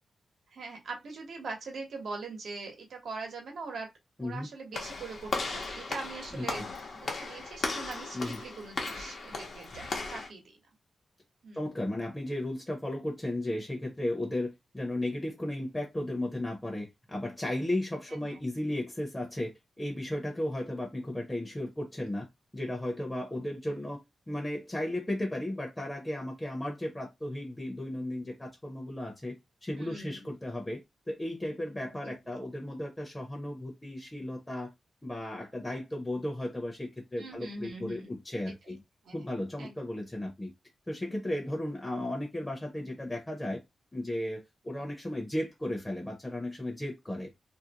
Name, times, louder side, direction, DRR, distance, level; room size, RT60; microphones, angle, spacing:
voice 1, 0.5-3.9 4.2-6.6 7.0-10.4 11.4-11.6 18.1-18.4 23.7-23.8 29.8-30.2 32.0-32.4 37.2-38.1 38.7-38.8 39.0-39.2 39.6-39.7, right 3 dB, 80° right, 0.9 m, -42 dB
Walk footsteps / Slam, 4.7-10.3, left 3 dB, 60° left, 0.7 m, -36 dB
voice 2, 11.5-22.3 22.5-24.0 24.3-29.4 29.6-30.8 31.1-34.7 35.0-38.8 39.1-40.5 40.9-43.6 43.9-47.3, left 1 dB, 15° left, 0.7 m, -35 dB
2.5 x 2.1 x 2.8 m
wide cardioid pair, 100°, 0 cm